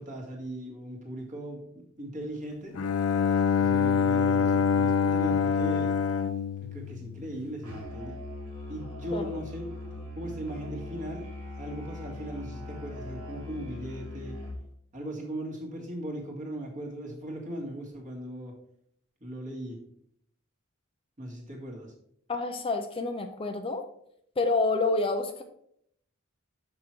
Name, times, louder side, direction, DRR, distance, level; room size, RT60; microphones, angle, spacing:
voice 1, 0.0-2.7 3.6-5.9 6.7-8.2 8.7-11.3 11.6-14.4 14.9-18.6 19.2-19.8 21.2-21.9, right 1 dB, 35° right, -1 dB, 1.9 m, -38 dB
Bowed string instrument, 2.7-7.6, left 6 dB, 80° left, 0.5 m, -25 dB
Musical instrument, 7.6-14.7, left 2 dB, 85° right, 2.4 m, -40 dB
voice 2, 22.3-23.8 24.4-25.4, left 3 dB, 25° left, 6 dB, 0.5 m, -28 dB
6.0 x 5.9 x 4.5 m, 0.71 s
head